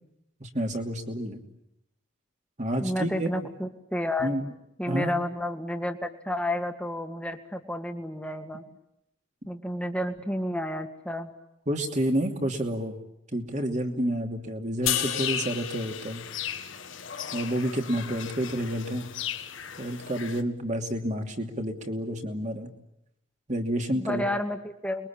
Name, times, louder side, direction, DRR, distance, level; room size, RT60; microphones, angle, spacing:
voice 1, 0.4-1.4 2.6-3.5 4.2-4.5 4.9-5.1 11.7-13.0 13.3-16.2 17.3-19.1 19.8-22.7 23.5-24.2, right 1 dB, 35° right, 4 dB, 2.8 m, -29 dB
voice 2, 2.8-4.3 4.8-8.6 9.5-11.3 23.9-25.1, left 1 dB, 5° left, 5 dB, 2.0 m, -31 dB
sound 1, 14.8-20.4, left 9 dB, 65° left, 1.6 m, -37 dB
sound 2, 14.9-18.1, left 10 dB, 80° left, 3.7 m, -34 dB
30.0 x 22.5 x 8.8 m, 0.84 s
head